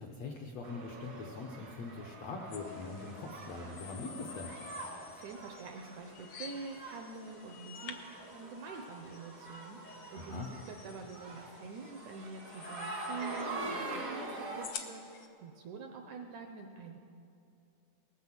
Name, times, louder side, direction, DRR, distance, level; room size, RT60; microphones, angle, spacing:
voice 1, 0.0-4.5 10.1-10.5, left 3 dB, 70° left, 1 dB, 1.6 m, -42 dB
sound 1, 0.6-14.7, right 2 dB, 55° right, 0.9 m, -45 dB
sound 2, 2.5-15.3, left 7 dB, 85° left, 1.3 m, -51 dB
voice 2, 5.1-17.0, right 4 dB, 80° right, 4 dB, 1.8 m, -46 dB
18.5 x 10.0 x 7.5 m, 2.7 s
omnidirectional pair, 4.3 m